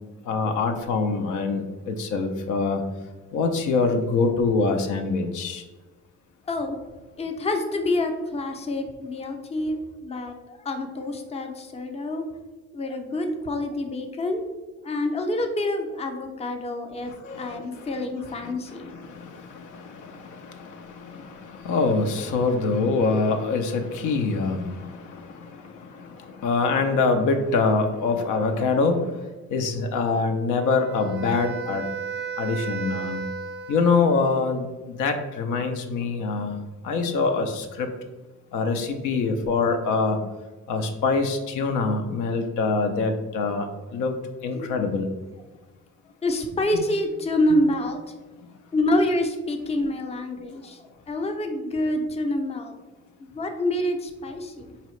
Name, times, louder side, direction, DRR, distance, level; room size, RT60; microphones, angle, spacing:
voice 1, 0.2-2.8 3.3-5.6 17.1-18.0 18.4-31.8 32.4-33.2 33.7-37.9 38.5-40.2 40.7-45.1, left 4 dB, 85° left, 5 dB, 0.6 m, -25 dB
voice 2, 6.5-6.8 7.2-12.2 12.7-14.4 14.8-17.1 17.4-18.9 44.5-44.7 46.2-48.0 48.7-52.7 53.2-54.7, left 1 dB, 20° left, 5 dB, 0.5 m, -27 dB
Wind instrument woodwind instrument, 30.5-34.6, right 5 dB, 35° right, 0.4 m, -34 dB
4.0 x 2.8 x 3.1 m, 1.2 s
cardioid pair, 90°, 30 cm